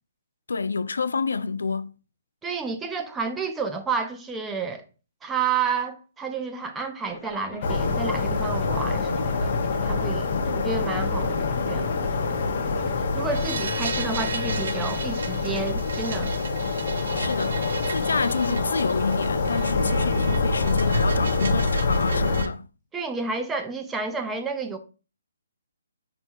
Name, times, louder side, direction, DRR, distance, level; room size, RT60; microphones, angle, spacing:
voice 1, 0.5-1.9 17.1-17.6 17.9-22.6, left 4 dB, 85° left, 0.4 m, -28 dB
voice 2, 2.4-4.8 5.2-12.0 13.1-16.3 22.9-24.8, right 5 dB, 10° right, 0.5 m, -30 dB
Zipper (clothing), 7.0-13.0, left 3 dB, 15° left, 0.8 m, -41 dB
sound 1, 7.6-22.5, left 3 dB, 45° left, 0.8 m, -25 dB
sound 2, 13.3-22.5, right 5 dB, 65° right, 0.6 m, -37 dB
5.3 x 2.2 x 4.5 m
hypercardioid pair, 165°, 0 cm